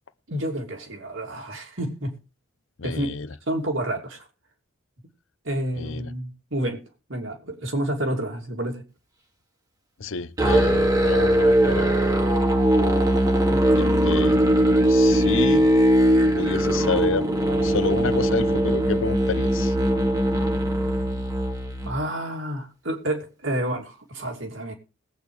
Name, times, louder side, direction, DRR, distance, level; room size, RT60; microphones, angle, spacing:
voice 1, 0.3-2.1 2.8-3.1 3.5-4.3 5.4-6.8 7.1-8.8 13.5-13.8 21.8-24.7, right 1 dB, 70° right, 2.8 m, -29 dB
voice 2, 2.8-3.3 5.8-6.1 10.0-12.0 13.7-14.4 14.9-15.7 16.4-17.3 17.6-19.7, left 4 dB, 70° left, 0.7 m, -29 dB
Musical instrument, 10.4-22.0, right 1 dB, 20° right, 1.4 m, -20 dB
21.0 x 8.5 x 3.3 m
head